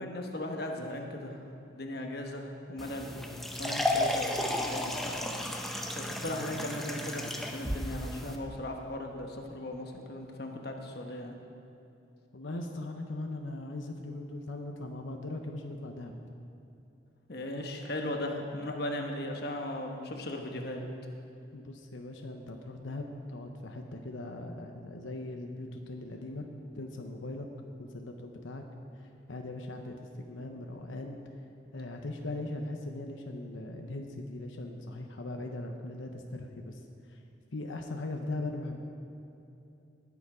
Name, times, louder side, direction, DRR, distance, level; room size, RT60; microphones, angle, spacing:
voice 1, 0.0-1.4 1.7-3.1 3.6-5.4 5.9-11.4 17.3-20.8, left 1 dB, 55° left, 2 dB, 1.1 m, -37 dB
sound 1, 2.8-8.4, left 1 dB, ahead, 0.7 m, -33 dB
voice 2, 12.3-16.1 21.5-26.5 26.7-27.5 27.8-28.6 28.9-31.3 31.7-37.2 37.5-38.8, left 2 dB, 85° left, 3 dB, 0.9 m, -39 dB
19.0 x 7.1 x 5.0 m, 2.8 s
head